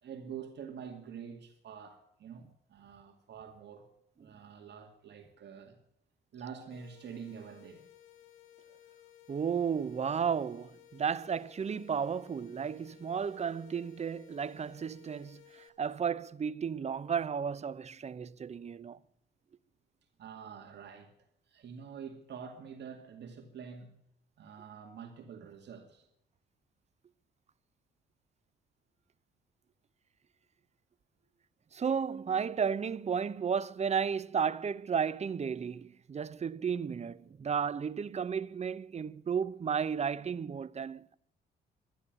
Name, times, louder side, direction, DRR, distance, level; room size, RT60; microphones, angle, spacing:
voice 1, 0.0-3.9 4.2-5.8 6.3-7.8 20.2-21.1 21.5-24.0 24.4-26.1, right 7 dB, 60° right, 2.3 m, -46 dB
sound 1, 6.7-15.7, left 12 dB, 80° left, 2.3 m, -58 dB
voice 2, 9.3-19.0 31.7-41.1, right 7 dB, 35° right, 0.7 m, -33 dB
12.5 x 11.5 x 9.5 m
cardioid pair, 90°, 20 cm